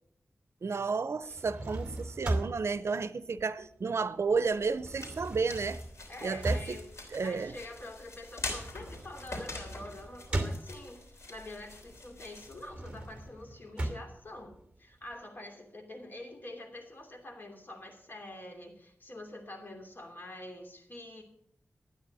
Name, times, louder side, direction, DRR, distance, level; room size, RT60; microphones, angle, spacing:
voice 1, 0.6-5.8 6.2-6.8 7.1-7.5, right 4 dB, 70° right, 0.6 m, -32 dB
sound 1, 1.2-4.1 4.4-11.2 11.6-15.2, right 1 dB, 20° right, 2.5 m, -38 dB
sound 2, 4.3-13.3, left 2 dB, 80° left, 3.3 m, -45 dB
voice 2, 6.1-6.9 7.2-21.2, left 1 dB, 45° left, 2.9 m, -46 dB
12.5 x 9.3 x 6.2 m
wide cardioid pair, 95°, 5 cm